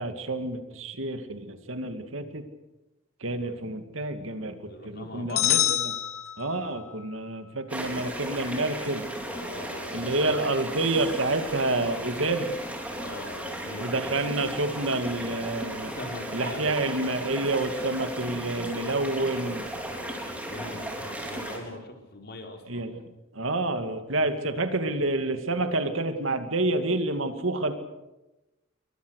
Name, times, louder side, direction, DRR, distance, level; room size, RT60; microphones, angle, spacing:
voice 1, 0.0-2.4 3.2-5.9 6.4-9.1 9.9-12.5 13.8-15.9 16.3-19.6 22.7-23.0 23.3-27.7, right 2 dB, 75° right, 7 dB, 2.4 m, -28 dB
voice 2, 4.7-5.8 9.3-10.4 12.9-14.3 15.8-17.0 19.8-22.8, left 2 dB, 50° left, 3 dB, 4.5 m, -42 dB
sound 1, 5.4-6.9, left 13 dB, 90° left, 2.1 m, -26 dB
sound 2, 7.7-21.6, right 1 dB, 5° right, 4.4 m, -36 dB
28.0 x 23.0 x 6.6 m, 1.0 s
head